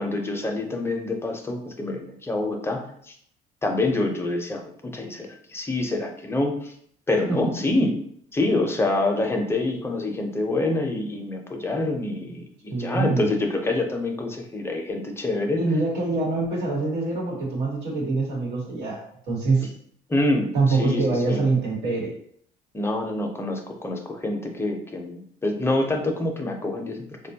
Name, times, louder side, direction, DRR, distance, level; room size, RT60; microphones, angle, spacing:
voice 1, 0.0-3.1 3.6-6.7 7.1-8.0 8.3-15.6 20.1-21.5 22.7-27.0, left 2 dB, 15° left, 2 dB, 0.5 m, -26 dB
voice 2, 12.7-13.3 15.5-19.7 20.5-22.1, right 3 dB, 85° right, -3 dB, 1.1 m, -24 dB
3.8 x 2.2 x 2.7 m, 0.65 s
cardioid pair, 110°, 17 cm